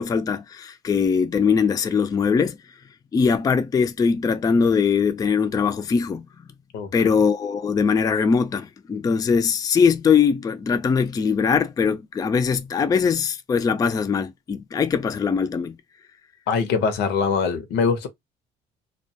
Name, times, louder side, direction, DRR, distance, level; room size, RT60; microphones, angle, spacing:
voice 1, 0.0-2.6 3.1-6.3 6.9-15.8, left 6 dB, 20° left, 0.3 m, -21 dB
voice 2, 16.5-18.1, left 5 dB, 85° left, 0.7 m, -22 dB
2.2 x 2.2 x 2.7 m
cardioid pair, 110°, 17 cm